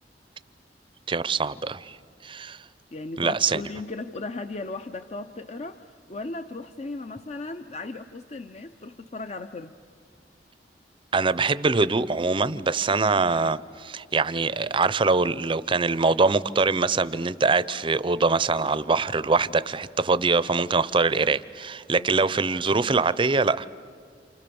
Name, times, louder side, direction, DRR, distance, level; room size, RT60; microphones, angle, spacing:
voice 1, 1.1-2.0 2.2-2.6 3.2-3.6 11.1-23.7, right 4 dB, 30° right, 16 dB, 0.6 m, -23 dB
voice 2, 2.9-9.7 22.0-22.1, left 3 dB, 40° left, 9 dB, 0.6 m, -36 dB
29.0 x 28.5 x 7.0 m, 2.2 s
head